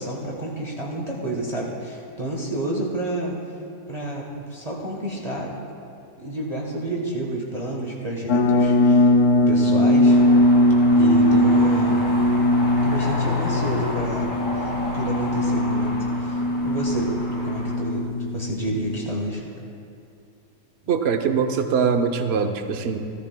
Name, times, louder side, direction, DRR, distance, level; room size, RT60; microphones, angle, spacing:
voice 1, 0.0-3.3 3.9-5.5 6.2-9.1 9.5-10.2 11.0-12.0 12.8-14.3 14.6-15.9 16.2-17.1 17.4-18.1 18.3-19.4, right 1 dB, 25° right, -3 dB, 1.2 m, -29 dB
sound 1, 8.3-19.2, left 1 dB, 80° left, 1.2 m, -20 dB
sound 2, 10.0-17.8, left 1 dB, 55° left, 3.0 m, -32 dB
voice 2, 20.9-23.0, right 6 dB, 55° right, 7 dB, 0.8 m, -22 dB
16.5 x 14.0 x 2.2 m, 2.5 s
omnidirectional pair, 1.6 m